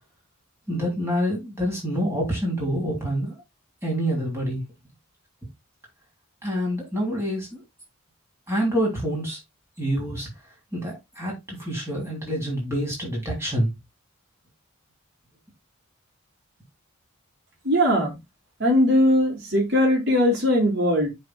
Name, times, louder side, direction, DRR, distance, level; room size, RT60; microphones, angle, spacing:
voice 1, 0.7-3.4 3.8-4.6 6.4-7.6 8.5-9.4 9.8-10.3 10.7-13.7, equal, 10° right, 3.1 m, -27 dB
voice 2, 17.6-18.2 18.6-21.1, left 1 dB, 55° right, 3.0 m, -20 dB
10.5 x 4.4 x 2.3 m
head